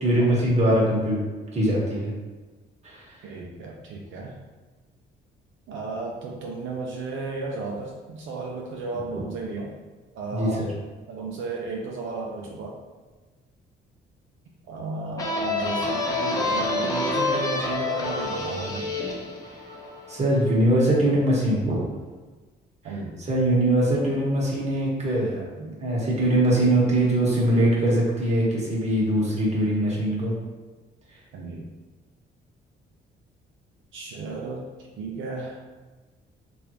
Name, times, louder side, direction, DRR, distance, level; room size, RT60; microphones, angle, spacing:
voice 1, 0.0-1.2 1.5-2.1 2.8-3.0 10.3-10.7 20.1-21.8 23.3-30.3, right 1 dB, 35° right, -5 dB, 1.2 m, -22 dB
voice 2, 3.2-4.4 5.7-9.7 10.1-10.7 11.1-12.8 14.7-18.9 22.8-23.2 31.3-31.7 33.9-34.6 35.0-35.6, right 3 dB, 80° right, -2 dB, 0.5 m, -33 dB
sound 1, 15.2-20.6, left 2 dB, 15° left, 0.7 m, -28 dB
3.4 x 2.5 x 2.9 m, 1.3 s
cardioid pair, 90°, 20 cm